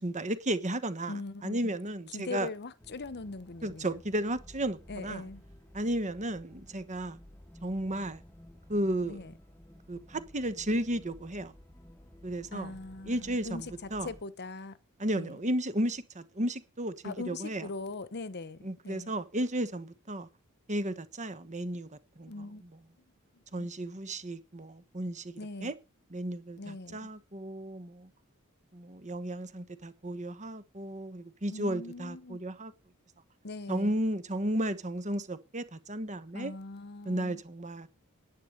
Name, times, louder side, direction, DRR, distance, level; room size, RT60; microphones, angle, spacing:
voice 1, 0.0-1.1 1.4-2.5 3.6-5.2 5.7-7.2 7.6-8.2 8.7-9.2 9.9-11.5 12.2-12.7 13.1-13.7 13.9-14.1 15.0-17.6 18.6-20.3 20.7-21.9 22.2-22.3 23.5-25.7 26.1-28.1 28.7-32.7 33.7-36.5 37.1-37.9, right 1 dB, 35° right, 1.2 m, -33 dB
voice 2, 1.1-1.7 2.1-4.0 4.9-5.4 9.0-9.3 12.5-14.8 15.1-15.4 17.0-19.1 22.3-22.6 23.3-23.7 25.4-25.7 26.6-27.1 31.5-32.4 33.4-34.0 36.3-37.4, left 3 dB, 50° left, 1.0 m, -41 dB
sound 1, 2.8-14.2, left 1 dB, 10° left, 1.4 m, -54 dB
11.0 x 9.6 x 6.6 m
head